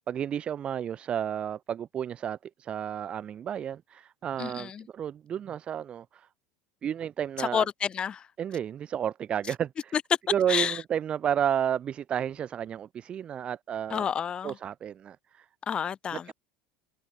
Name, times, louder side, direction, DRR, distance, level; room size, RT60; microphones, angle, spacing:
voice 1, 0.1-6.3 6.8-7.7 8.4-9.9 10.3-14.0 14.4-15.5 16.3-16.4, right 9 dB, 35° right, 0.4 m, -31 dB
voice 2, 4.4-4.9 7.4-8.3 9.9-10.0 10.5-10.8 13.9-14.6 15.6-16.3, left 7 dB, 30° left, 0.5 m, -30 dB
hypercardioid pair, 90°, 3 cm